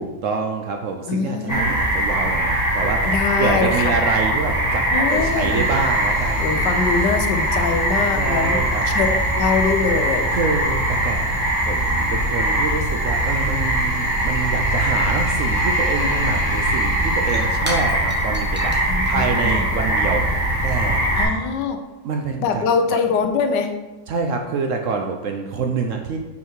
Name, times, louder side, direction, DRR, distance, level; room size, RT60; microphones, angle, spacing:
voice 1, 0.0-6.5 8.2-8.8 10.3-20.3 20.6-21.3 22.0-22.6 22.9-23.0 24.1-26.2, right 4 dB, 65° right, 3 dB, 0.8 m, -26 dB
voice 2, 1.1-1.9 3.0-3.9 4.9-5.7 6.4-8.6 8.9-10.3 18.9-19.7 21.1-21.8 22.4-23.7, left 5 dB, 90° left, 6 dB, 1.3 m, -23 dB
sound 1, 1.5-21.2, right 1 dB, 10° left, 1.5 m, -21 dB
sound 2, 5.1-17.5, left 2 dB, 70° left, 1.9 m, -32 dB
Shatter / Crushing, 17.1-21.5, right 1 dB, 10° right, 0.7 m, -37 dB
5.7 x 4.7 x 4.5 m, 1.1 s
omnidirectional pair, 1.8 m